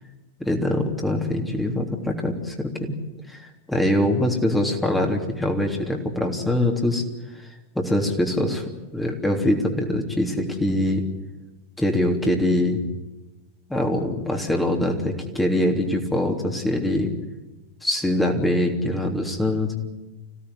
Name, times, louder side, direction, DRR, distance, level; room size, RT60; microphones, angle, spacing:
voice 1, 0.4-3.0 3.3-7.0 7.4-7.5 7.8-11.1 11.8-12.8 13.7-17.1 17.8-19.8, left 1 dB, 5° left, 2 dB, 3.4 m, -23 dB
26.0 x 17.0 x 9.9 m, 1.1 s
figure-of-eight pair, 90°, 0 cm